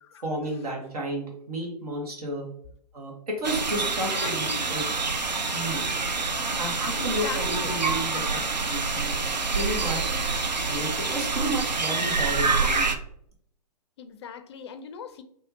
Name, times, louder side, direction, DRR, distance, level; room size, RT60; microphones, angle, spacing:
voice 1, 0.2-2.5 2.9-4.9 5.5-6.0 6.6-9.2 9.5-10.1 10.7-12.9, right 1 dB, 60° right, -1 dB, 1.5 m, -32 dB
sound 1, 3.4-13.0, right 4 dB, 85° right, 0.6 m, -27 dB
voice 2, 3.8-4.8 6.5-6.6 7.0-7.8 14.0-15.2, left 7 dB, 40° left, 9 dB, 0.4 m, -40 dB
5.5 x 2.8 x 2.7 m, 0.67 s
figure-of-eight pair, 120°, 21 cm